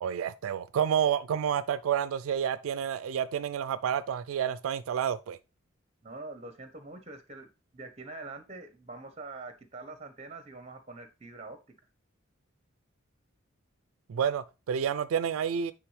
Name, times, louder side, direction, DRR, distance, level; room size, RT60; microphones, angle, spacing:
voice 1, 0.0-5.4 14.1-15.7, right 8 dB, 80° right, 0.3 m, -29 dB
voice 2, 6.0-7.5 7.7-11.6, right 3 dB, 30° right, 0.9 m, -44 dB
9.3 x 3.5 x 3.2 m
head